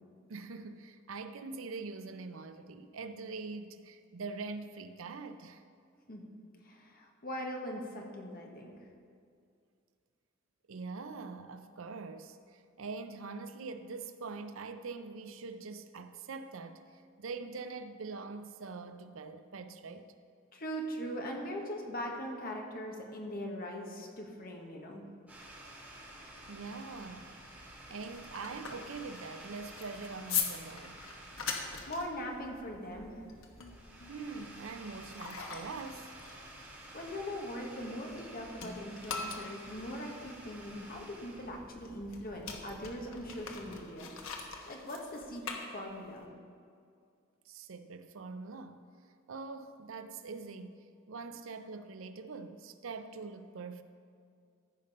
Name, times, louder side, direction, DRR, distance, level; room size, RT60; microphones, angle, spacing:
voice 1, 0.3-5.6 10.7-16.8 17.2-20.1 26.5-27.3 27.6-31.0 34.1-36.1 47.5-48.8 49.3-50.8 51.1-53.8, right 4 dB, 75° right, 9 dB, 0.6 m, -43 dB
voice 2, 6.6-8.9 20.5-25.0 31.6-33.2 36.9-44.1 44.7-46.3, equal, 45° left, 1 dB, 1.4 m, -41 dB
sound 1, 25.3-43.8, right 1 dB, 5° right, 2.4 m, -51 dB
sound 2, 27.8-38.3 38.6-46.3, left 6 dB, 80° left, 1.1 m, -42 dB
14.0 x 5.2 x 5.4 m, 2.3 s
head